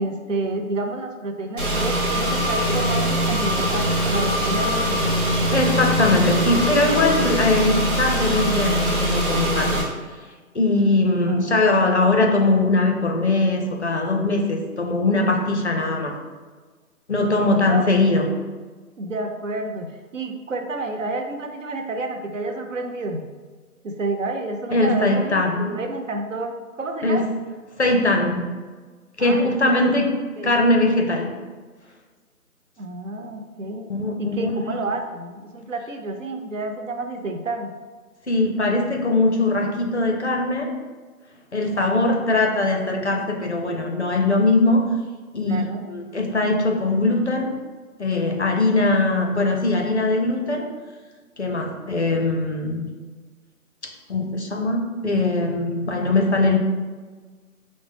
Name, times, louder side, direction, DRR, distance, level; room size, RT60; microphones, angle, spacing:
voice 1, 0.0-5.1 11.3-11.5 17.6-17.9 19.0-23.3 23.8-27.3 29.2-29.8 30.4-30.6 32.8-33.9 34.2-37.7 45.4-45.8, right 2 dB, 60° right, 4 dB, 0.5 m, -29 dB
Car / Engine, 1.6-9.8, right 1 dB, 35° right, 0.9 m, -22 dB
voice 2, 5.5-9.9 10.5-16.2 17.1-18.3 24.7-25.7 27.0-27.2 27.8-28.5 29.2-30.1 30.4-31.3 33.9-34.8 38.3-40.7 41.5-44.9 45.3-47.5 48.0-50.7 51.4-52.9 53.8-56.6, left 2 dB, 50° left, 2 dB, 0.5 m, -21 dB
5.0 x 2.0 x 3.2 m, 1.4 s
figure-of-eight pair, 175°, 45 cm